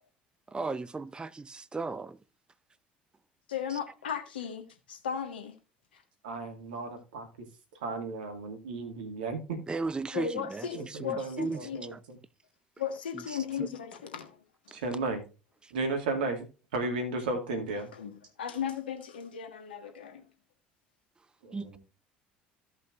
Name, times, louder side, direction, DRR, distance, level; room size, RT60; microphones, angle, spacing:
voice 1, 0.5-2.2 3.7-3.8 9.7-11.6 11.9-12.0 13.6-13.7 14.7-14.8 15.6-15.7 21.5-21.8, right 3 dB, 15° right, 0.5 m, -36 dB
voice 2, 3.5-5.5 5.9-6.0 10.1-11.8 12.8-14.4 14.7-14.8 17.9-18.1 18.4-20.3, left 8 dB, 85° left, 1.5 m, -36 dB
voice 3, 6.2-7.3 7.8-9.6 10.7-11.9 14.7-15.2 15.7-16.5 16.7-17.9 21.4-21.8, right 3 dB, 80° right, 2.1 m, -34 dB
16.0 x 5.6 x 2.5 m
hypercardioid pair, 65°, 5 cm